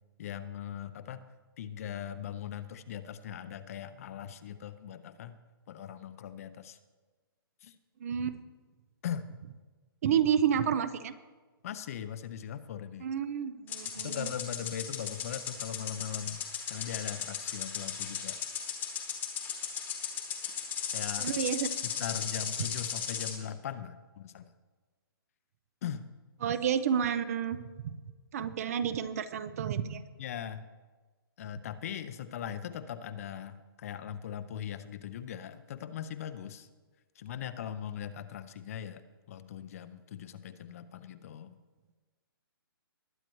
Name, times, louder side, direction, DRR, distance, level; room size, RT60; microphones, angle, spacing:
voice 1, 0.2-1.2 1.6-5.4 5.7-6.8 7.6-7.8 9.0-9.3 11.6-13.1 14.0-16.4 16.7-18.4 20.9-21.3 21.8-24.5 25.8-26.1 30.2-30.7 31.4-36.7 37.2-41.6, left 9 dB, 40° left, 12 dB, 0.6 m, -40 dB
voice 2, 8.0-8.4 10.0-11.1 13.0-14.3 21.2-21.7 26.4-27.6 27.8-27.9 28.3-30.0, right 8 dB, 40° right, 13 dB, 0.5 m, -30 dB
sound 1, 13.7-23.4, left 8 dB, 15° left, 1.1 m, -36 dB
20.0 x 9.0 x 3.1 m, 1.3 s
hypercardioid pair, 160°, 13 cm